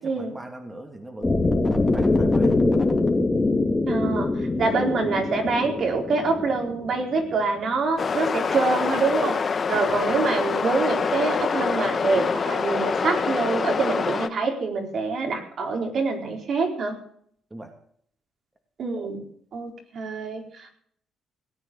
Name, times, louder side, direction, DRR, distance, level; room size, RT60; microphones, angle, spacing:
voice 1, 0.0-1.6 1.9-2.6 4.6-4.7 9.8-10.2 17.5-17.7, right 1 dB, 15° right, 3 dB, 2.6 m, -41 dB
sound 1, 1.2-7.3, left 2 dB, 20° left, 3.0 m, -23 dB
voice 2, 3.9-9.4 9.7-17.0 18.8-19.2 19.5-20.7, right 4 dB, 60° right, 2 dB, 4.2 m, -25 dB
sound 2, 8.0-14.3, left 5 dB, 40° left, 1.0 m, -25 dB
17.5 x 9.2 x 7.0 m, 0.63 s
cardioid pair, 90°, 0 cm